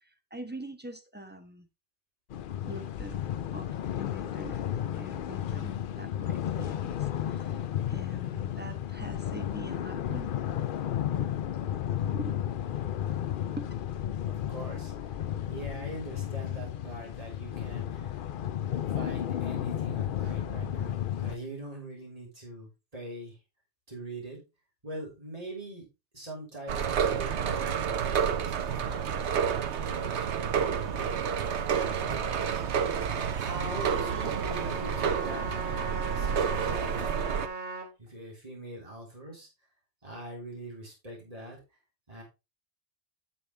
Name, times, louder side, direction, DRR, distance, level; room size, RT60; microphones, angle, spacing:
voice 1, 0.3-1.7 2.7-3.2 3.5-4.6 4.9-7.6 7.9-10.3 11.2-11.3 12.1-12.3 13.6-13.7, right 1 dB, 10° right, 1.0 m, -43 dB
sound 1, 2.3-21.4, left 10 dB, 55° left, 0.7 m, -33 dB
voice 2, 14.2-18.2 18.9-23.4 23.9-24.4 24.8-25.9 26.1-29.4 29.7-31.2 31.8-32.4 33.4-37.7 38.0-39.5 40.0-41.6 42.1-42.2, right 1 dB, 35° right, 4.2 m, -43 dB
sound 2, 26.7-37.5, right 7 dB, 85° right, 1.1 m, -29 dB
Trumpet, 33.5-37.9, right 4 dB, 55° right, 2.5 m, -37 dB
10.5 x 7.0 x 3.3 m
omnidirectional pair, 1.1 m